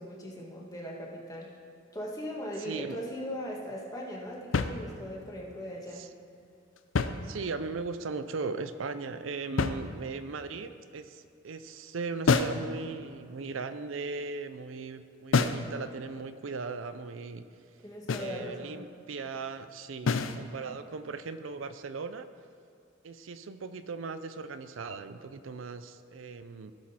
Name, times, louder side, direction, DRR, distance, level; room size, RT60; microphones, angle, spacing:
voice 1, 0.0-1.5 1.9-6.1 17.8-18.8, equal, 20° left, -3 dB, 1.7 m, -39 dB
voice 2, 2.6-3.0 6.0-6.1 7.2-17.4 18.2-22.3 23.0-26.7, right 4 dB, 80° right, 11 dB, 0.5 m, -38 dB
sound 1, 4.5-5.3 6.8-7.8 9.6-10.4 12.3-12.7 15.3-15.7 18.1-18.4 20.1-20.4, left 4 dB, 90° left, 0.5 m, -28 dB
16.5 x 6.3 x 4.3 m, 2.5 s
head